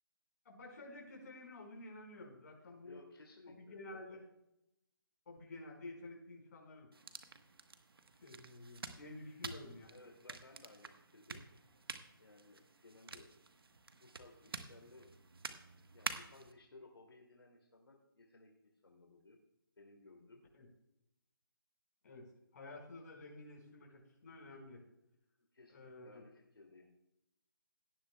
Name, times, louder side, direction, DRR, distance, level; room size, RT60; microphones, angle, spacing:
voice 1, 0.4-3.0 3.5-4.2 5.2-6.9 8.2-10.0 20.5-20.7 22.0-22.3 22.5-24.8 25.7-26.2, left 2 dB, 45° left, -1 dB, 4.9 m, -51 dB
voice 2, 2.8-4.2 9.4-9.6 9.9-11.4 12.2-13.3 13.9-15.1 15.9-19.4 19.8-20.4 25.5-26.9, left 2 dB, 85° left, 0 dB, 2.6 m, -60 dB
sound 1, 6.9-16.5, right 4 dB, 75° right, 1.2 m, -49 dB
17.5 x 10.0 x 2.3 m, 0.84 s
hypercardioid pair, 160°, 12 cm